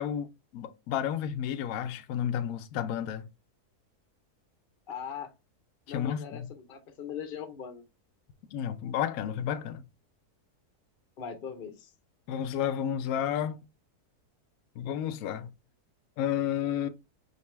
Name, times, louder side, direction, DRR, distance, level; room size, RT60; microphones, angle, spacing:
voice 1, 0.0-3.3 5.9-6.5 8.5-9.8 12.3-13.6 14.8-15.5 16.2-16.9, left 9 dB, 70° left, 1.0 m, -31 dB
voice 2, 4.9-5.3 5.9-7.8 11.2-11.9, left 8 dB, 45° left, 0.7 m, -40 dB
5.2 x 2.6 x 3.2 m
omnidirectional pair, 1.7 m